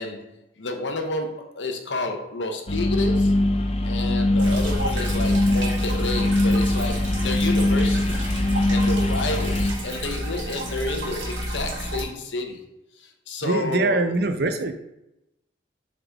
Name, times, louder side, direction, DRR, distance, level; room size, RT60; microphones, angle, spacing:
voice 1, 0.0-3.4 3.8-8.3 8.7-12.6 13.0-14.1, left 2 dB, 70° left, 4 dB, 0.9 m, -30 dB
sound 1, 2.7-9.7, left 1 dB, 30° left, 0.4 m, -22 dB
sound 2, 4.4-12.0, right 1 dB, 80° right, 1.5 m, -31 dB
voice 2, 13.4-14.7, right 2 dB, 55° right, 8 dB, 0.5 m, -23 dB
6.7 x 3.9 x 3.5 m, 0.87 s
head